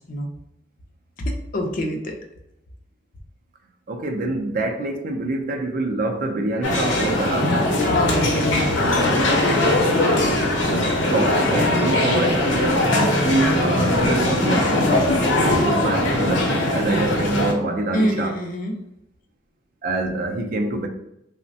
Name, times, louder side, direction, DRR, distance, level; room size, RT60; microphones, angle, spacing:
voice 1, 1.2-2.1 7.8-9.1 17.9-18.7, equal, 45° left, 0.4 m, -25 dB
voice 2, 3.9-7.6 10.7-18.3 19.8-20.9, right 2 dB, 50° right, 0.4 m, -25 dB
sound 1, 6.6-17.5, left 1 dB, 85° left, 0.7 m, -20 dB
3.2 x 2.1 x 2.6 m
head